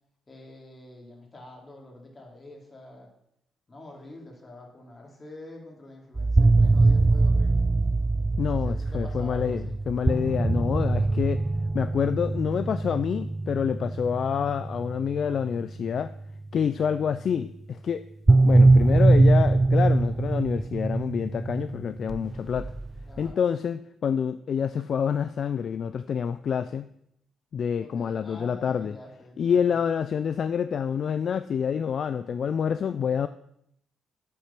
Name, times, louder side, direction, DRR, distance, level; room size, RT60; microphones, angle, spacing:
voice 1, 0.3-3.1 3.7-7.7 8.4-9.8 23.0-23.4 27.8-29.8, left 2 dB, 30° left, 0 dB, 3.3 m, -46 dB
sound 1, 6.2-16.3 18.3-23.3, right 2 dB, 20° right, 0.3 m, -22 dB
voice 2, 8.4-11.4 11.7-16.1 16.5-18.0 18.4-22.7 23.2-26.9 27.5-29.0 29.4-33.3, left 7 dB, 55° left, 12 dB, 0.4 m, -27 dB
8.7 x 8.3 x 6.0 m, 0.75 s
cardioid pair, 90°, 0 cm